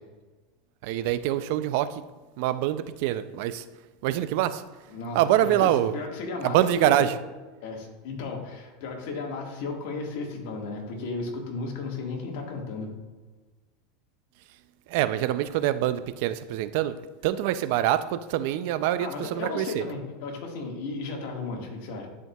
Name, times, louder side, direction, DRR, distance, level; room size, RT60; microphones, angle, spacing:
voice 1, 0.8-2.0 2.4-3.6 4.0-4.6 5.1-5.9 6.4-7.1 14.9-17.0 17.2-19.8, right 13 dB, 65° right, 13 dB, 0.4 m, -25 dB
voice 2, 4.9-7.1 7.6-12.9 19.0-22.1, left 3 dB, 65° left, 0 dB, 1.6 m, -34 dB
11.0 x 4.5 x 2.3 m, 1.3 s
supercardioid pair, 125°, 0 cm